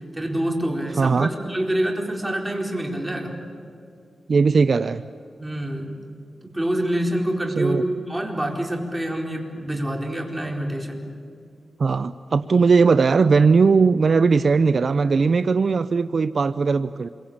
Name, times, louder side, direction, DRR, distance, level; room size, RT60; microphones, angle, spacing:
voice 1, 0.1-3.4 5.4-6.0 6.5-11.0, right 1 dB, 10° right, 0 dB, 4.3 m, -26 dB
voice 2, 1.0-1.3 4.3-5.0 7.6-7.8 11.8-17.1, right 4 dB, 60° right, 13 dB, 0.6 m, -18 dB
27.5 x 23.0 x 8.7 m, 2.4 s
wide cardioid pair, 85°, 0 cm